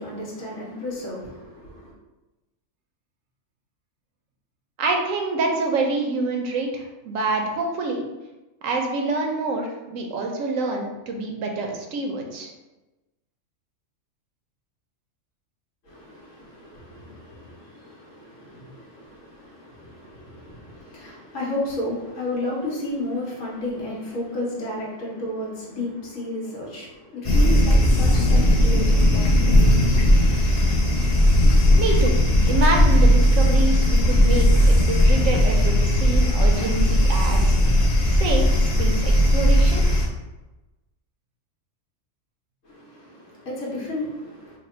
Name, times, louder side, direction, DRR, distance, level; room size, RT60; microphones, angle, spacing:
voice 1, 0.0-1.9 15.8-29.6 42.6-44.6, left 1 dB, 80° left, 1.4 m, -33 dB
voice 2, 4.8-8.1 8.6-12.5 31.8-32.2 32.5-37.6 38.1-38.5 38.8-39.8, right 3 dB, 85° right, 1.0 m, -26 dB
sound 1, 27.2-40.1, left 1 dB, 40° left, 0.7 m, -17 dB
3.4 x 2.2 x 4.2 m
omnidirectional pair, 1.3 m